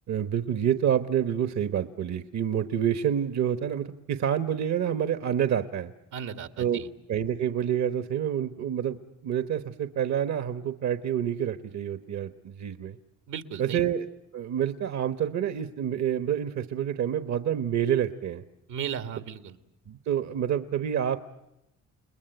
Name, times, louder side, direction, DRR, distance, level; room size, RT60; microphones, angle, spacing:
voice 1, 0.1-5.9 6.6-6.8 7.1-13.0 13.6-14.1 14.3-18.4 19.9-21.2, right 9 dB, 65° right, 11 dB, 1.1 m, -28 dB
voice 2, 6.1-6.9 13.3-13.8 18.7-19.5, right 8 dB, 85° right, 9 dB, 1.7 m, -35 dB
29.5 x 20.5 x 8.0 m, 0.90 s
cardioid pair, 90°, 30 cm